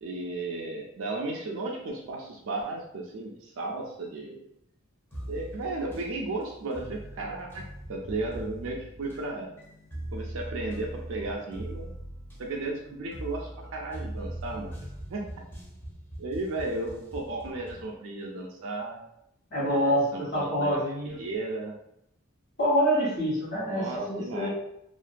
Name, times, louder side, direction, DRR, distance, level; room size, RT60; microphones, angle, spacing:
voice 1, 0.0-4.4 5.3-9.6 10.1-11.9 12.4-14.7 15.1-15.3 16.2-19.0 19.7-20.8 21.1-21.8 23.7-24.5, right 2 dB, 65° right, -1 dB, 0.4 m, -34 dB
sound 1, 5.1-17.9, right 1 dB, 10° left, 0.5 m, -41 dB
voice 2, 19.5-21.2 22.6-24.5, equal, 50° left, -5 dB, 1.0 m, -26 dB
2.4 x 2.2 x 2.5 m, 0.77 s
head